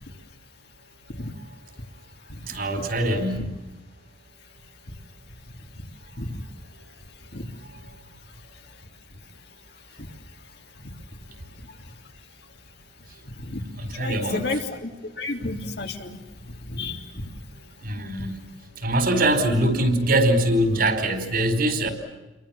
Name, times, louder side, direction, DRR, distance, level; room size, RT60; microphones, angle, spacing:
voice 1, 2.4-3.6 13.8-14.4 17.8-18.4 18.8-21.9, right 1 dB, 55° right, 8 dB, 4.8 m, -23 dB
voice 2, 14.0-14.9 15.2-16.2 16.7-17.3, left 2 dB, 65° left, 3 dB, 3.4 m, -31 dB
30.0 x 23.5 x 7.3 m, 1.1 s
head